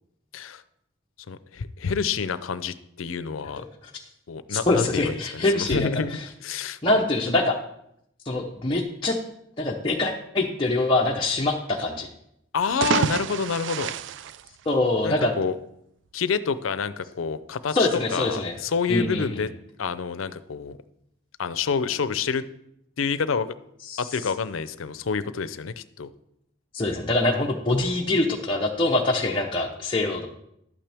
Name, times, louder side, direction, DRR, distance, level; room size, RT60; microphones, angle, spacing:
voice 1, 1.3-3.6 4.3-6.1 6.4-6.8 12.5-13.9 15.0-15.6 16.1-19.5 19.8-20.8 21.4-22.4 23.0-23.5 24.0-26.1, left 5 dB, 90° left, 14 dB, 0.5 m, -28 dB
voice 2, 3.4-3.9 4.5-6.3 6.8-7.6 8.2-9.2 9.6-12.1 14.7-15.3 17.7-18.5 18.9-19.4 23.8-24.0 26.7-30.3, left 2 dB, 25° left, -2 dB, 0.8 m, -24 dB
sound 1, 12.6-15.2, right 7 dB, 65° right, 0.3 m, -28 dB
12.0 x 8.8 x 3.4 m, 0.77 s
head